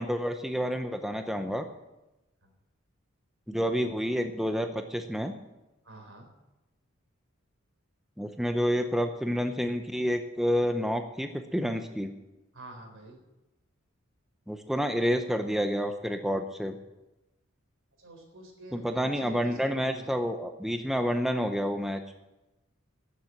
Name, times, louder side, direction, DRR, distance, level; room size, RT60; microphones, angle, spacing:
voice 1, 0.0-1.6 3.5-5.3 8.2-12.1 14.5-16.8 18.7-22.0, equal, ahead, 6 dB, 0.7 m, -29 dB
voice 2, 5.8-6.3 12.5-13.2 18.0-20.2, right 1 dB, 70° right, 3 dB, 3.9 m, -47 dB
12.5 x 7.5 x 8.9 m, 0.99 s
head